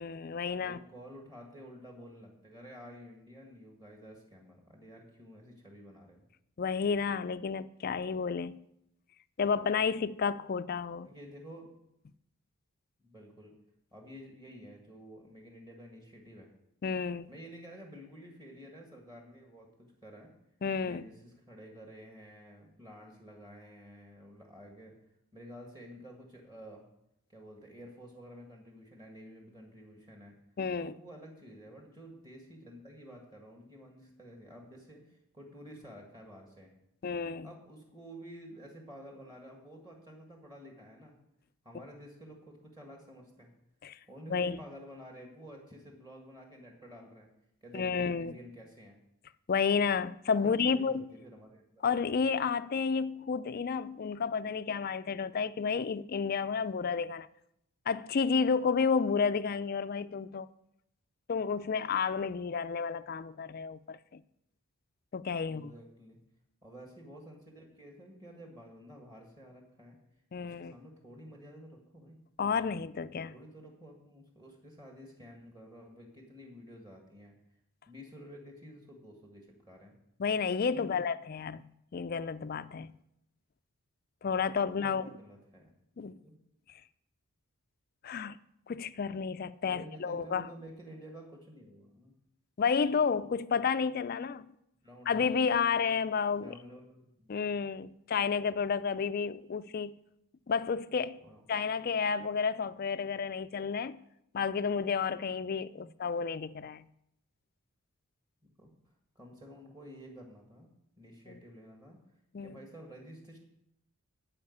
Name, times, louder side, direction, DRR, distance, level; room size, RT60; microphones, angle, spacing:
voice 1, 0.0-0.8 6.6-8.6 9.4-11.1 16.8-17.3 20.6-21.0 30.6-30.9 37.0-37.5 43.8-44.0 44.3-44.6 47.7-48.4 49.5-51.0 51.8-57.3 57.9-60.5 61.3-64.2 65.1-65.7 70.3-70.7 72.4-73.3 80.2-82.9 84.2-85.0 86.0-86.2 88.0-88.4 88.7-90.5 92.6-94.5 95.1-96.5 97.3-100.0 100.5-101.2 101.5-104.0 104.3-106.8 111.3-111.4 112.3-112.6, left 5 dB, 40° left, 0.3 m, -31 dB
voice 2, 0.6-6.2 11.0-11.7 13.0-13.5 13.9-16.5 17.3-20.4 20.8-24.9 25.3-26.9 27.3-30.4 30.8-36.7 37.4-41.2 41.6-43.5 44.1-47.3 47.6-49.0 50.4-52.1 65.4-66.2 66.6-70.0 70.4-72.2 72.6-72.8 73.3-77.3 77.9-79.9 80.7-81.1 84.6-85.7 86.2-86.3 89.7-92.1 94.8-95.5 96.3-97.4 101.2-101.4 105.8-105.9 108.4-108.7 109.2-110.7 111.0-112.0 112.4-113.4, equal, 20° right, 1.7 m, -51 dB
12.0 x 5.1 x 8.5 m
head